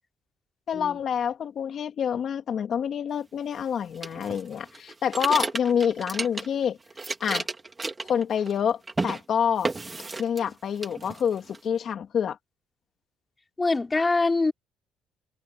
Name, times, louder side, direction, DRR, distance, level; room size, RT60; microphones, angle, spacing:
voice 1, 0.7-6.8 7.2-7.5 8.0-9.7 10.2-12.4, left 8 dB, 45° left, 2.9 m, -27 dB
sound 1, 4.0-6.6 6.9-8.6 8.9-9.2 9.6-10.5 10.8-11.6, right 3 dB, 15° right, 2.2 m, -32 dB
voice 2, 13.6-14.5, left 3 dB, 15° left, 4.3 m, -24 dB
cardioid pair, 150°, 0 cm